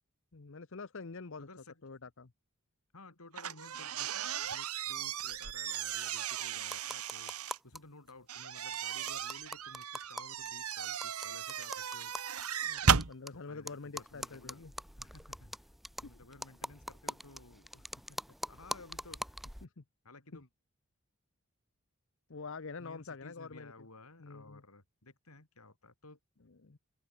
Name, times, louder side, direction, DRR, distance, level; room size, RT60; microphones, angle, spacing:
voice 1, 0.3-1.5 1.8-2.3 12.6-14.7 16.0-16.1 19.6-19.8 20.3-20.4 22.3-23.7 24.2-24.6 26.5-26.8, left 4 dB, 60° left, 0.9 m, -46 dB
voice 2, 1.4-1.8 2.9-4.1 4.4-7.3 7.6-12.1 12.9-14.6 15.0-15.5 16.0-18.2 18.5-19.3 20.0-20.5 22.8-26.2, left 2 dB, 80° left, 3.9 m, -55 dB
sound 1, 3.3-7.6 8.3-13.1, right 7 dB, 80° right, 1.6 m, -35 dB
sound 2, 6.6-7.8 8.1-8.2 8.4-8.5 8.7-13.3 13.7-19.7, equal, ahead, 0.9 m, -44 dB
open air
head